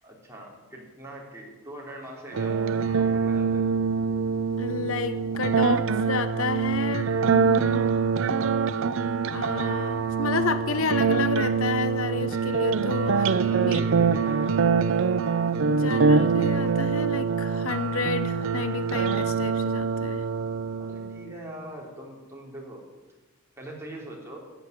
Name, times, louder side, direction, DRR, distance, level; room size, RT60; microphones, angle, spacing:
voice 1, 0.0-3.7 13.1-14.6 20.8-22.8 23.6-24.4, right 1 dB, 10° right, -3 dB, 3.5 m, -42 dB
sound 1, 2.3-21.3, right 5 dB, 60° right, 0.5 m, -24 dB
voice 2, 4.6-7.9 9.3-13.3 13.6-13.8 15.6-20.3, left 4 dB, 65° left, 12 dB, 0.7 m, -31 dB
14.5 x 8.1 x 9.6 m, 1.2 s
head